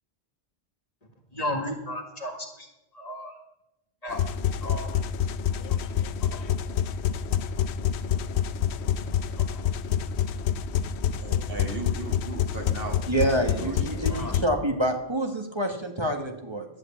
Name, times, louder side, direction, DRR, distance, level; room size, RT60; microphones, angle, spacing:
voice 1, 1.3-2.7 2.9-3.3 4.0-4.2 4.6-5.0 6.2-6.4 9.4-9.6 14.1-14.4, left 1 dB, 35° left, 3 dB, 1.8 m, -34 dB
sound 1, 4.1-14.4, left 8 dB, 80° left, 0.9 m, -27 dB
voice 2, 11.2-14.0, right 2 dB, 60° right, 3 dB, 2.2 m, -37 dB
voice 3, 13.1-16.7, right 1 dB, 25° right, 4 dB, 1.5 m, -27 dB
11.0 x 7.9 x 8.5 m, 0.93 s
omnidirectional pair, 1.1 m